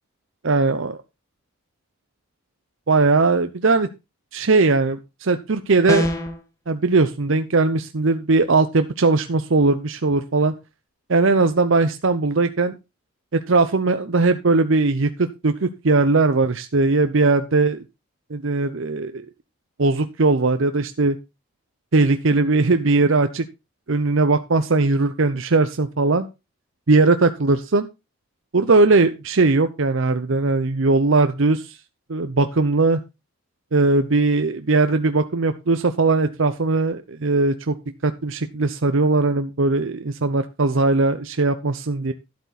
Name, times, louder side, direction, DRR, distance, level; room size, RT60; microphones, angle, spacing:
voice 1, 0.4-1.0 2.9-3.9 4.3-6.1 6.7-10.5 11.1-12.7 13.3-17.8 18.3-19.2 19.8-21.2 21.9-23.5 23.9-26.3 26.9-27.9 28.5-31.8 32.1-33.0 33.7-37.8 38.0-42.1, right 3 dB, 60° right, 9 dB, 0.7 m, -19 dB
sound 1, 5.9-6.4, left 1 dB, 15° left, 1.4 m, -23 dB
12.0 x 8.1 x 4.1 m, 0.26 s
head